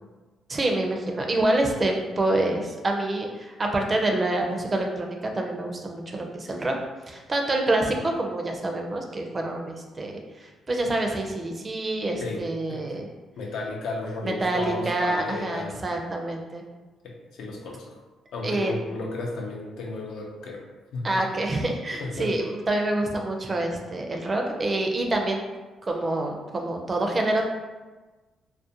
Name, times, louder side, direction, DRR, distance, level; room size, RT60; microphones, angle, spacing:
voice 1, 0.5-6.8 7.1-13.0 14.2-16.6 18.4-18.7 21.0-25.5 25.9-27.5, right 2 dB, 30° right, 2 dB, 0.4 m, -27 dB
voice 2, 12.7-13.1 13.4-15.8 17.0-18.0 18.3-20.6 20.9-21.1 22.0-22.3, left 3 dB, 75° left, 0 dB, 0.5 m, -34 dB
2.4 x 2.1 x 2.7 m, 1.2 s
cardioid pair, 90°, 0 cm